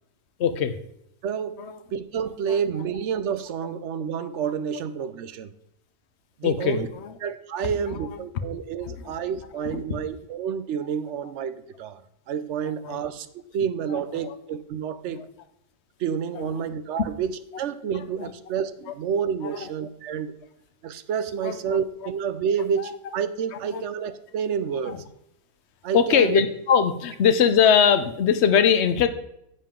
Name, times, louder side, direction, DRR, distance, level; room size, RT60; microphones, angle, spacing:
voice 1, 0.4-0.8 1.6-1.8 2.5-2.8 4.7-4.8 6.4-7.2 7.6-8.3 8.8-9.8 12.6-13.0 13.9-14.4 15.1-15.3 16.3-16.7 17.0-17.1 17.9-18.3 18.9-19.0 19.4-19.7 21.4-22.1 22.6-23.1 23.5-23.8 24.9-25.0 25.9-29.1, left 7 dB, 55° left, 9 dB, 1.0 m, -23 dB
voice 2, 1.2-1.6 1.9-5.5 6.4-6.9 7.2-12.0 12.3-13.3 13.5-15.2 16.0-20.3 20.8-25.0 25.8-26.3, right 7 dB, 60° right, 13 dB, 0.9 m, -29 dB
10.5 x 7.5 x 3.7 m, 0.77 s
omnidirectional pair, 1.5 m